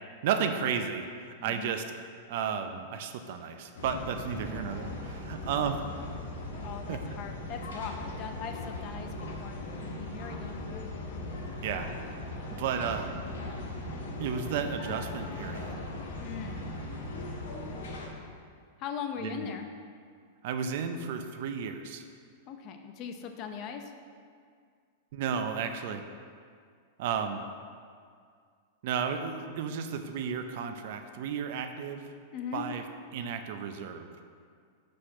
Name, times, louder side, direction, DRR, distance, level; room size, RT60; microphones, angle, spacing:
voice 1, 0.2-1.8 2.3-5.8 6.9-7.0 11.6-11.9 12.5-13.1 14.2-15.8 19.2-19.5 20.4-22.0 25.1-26.0 27.0-27.4 28.8-32.1 32.5-32.8 33.1-34.1, right 7 dB, 60° right, 7 dB, 0.5 m, -33 dB
voice 2, 1.4-1.8 6.6-10.8 16.2-16.6 18.8-19.7 22.5-23.9 32.3-32.7, left 7 dB, 40° left, 6 dB, 0.6 m, -40 dB
sound 1, 3.7-18.1, left 1 dB, 80° left, 1.0 m, -39 dB
4.9 x 4.2 x 5.7 m, 2.1 s
hypercardioid pair, 130°, 0 cm